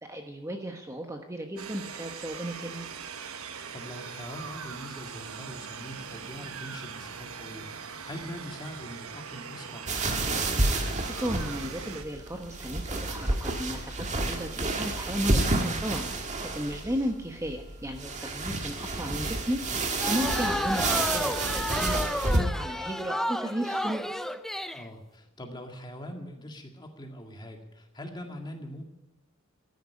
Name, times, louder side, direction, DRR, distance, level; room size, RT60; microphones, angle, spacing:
voice 1, 0.0-2.9 10.8-16.1 16.4-19.6 20.0-24.0, equal, 15° right, 4 dB, 1.1 m, -34 dB
sound 1, 1.6-12.0, right 6 dB, 75° right, 1.2 m, -41 dB
voice 2, 3.7-9.9 24.7-28.9, equal, 20° left, 3 dB, 2.0 m, -42 dB
sound 2, 9.9-22.4, right 2 dB, 35° right, 1.7 m, -30 dB
sound 3, 20.0-24.9, equal, ahead, 0.5 m, -31 dB
14.0 x 10.5 x 9.5 m, 0.96 s
head